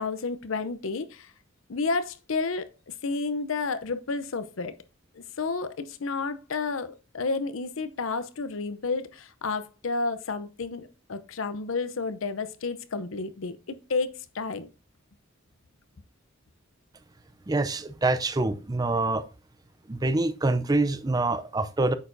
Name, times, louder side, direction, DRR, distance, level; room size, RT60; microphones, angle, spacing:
voice 1, 0.0-1.3 1.7-4.7 5.1-14.7, left 4 dB, 75° left, 0.7 m, -31 dB
voice 2, 17.5-19.2 19.9-21.9, right 2 dB, 20° right, 0.5 m, -25 dB
8.8 x 6.6 x 2.6 m
head